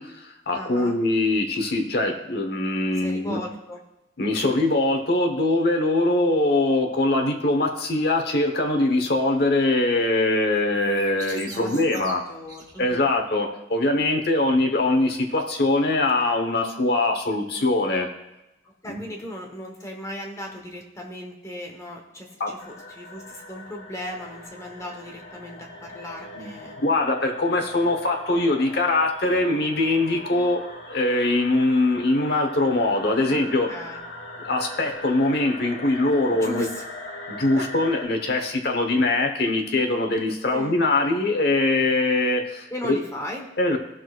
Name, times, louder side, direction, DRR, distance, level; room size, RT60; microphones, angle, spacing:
voice 1, 0.0-3.4 4.2-12.2 12.8-18.1 18.9-19.0 22.4-22.5 26.4-30.6 30.9-33.7 34.4-36.6 37.3-43.0 43.6-43.8, left 2 dB, 55° left, 3 dB, 1.1 m, -22 dB
voice 2, 0.5-1.0 2.9-3.8 11.5-13.1 18.6-26.8 33.3-34.0 36.4-36.8 37.5-37.7 40.5-40.8 42.7-43.5, left 1 dB, 15° left, 1 dB, 1.1 m, -37 dB
sound 1, 10.5-13.2, right 3 dB, 20° right, 1.2 m, -41 dB
sound 2, 22.6-38.0, left 1 dB, 85° left, 2.2 m, -40 dB
17.0 x 6.2 x 2.5 m, 0.96 s
head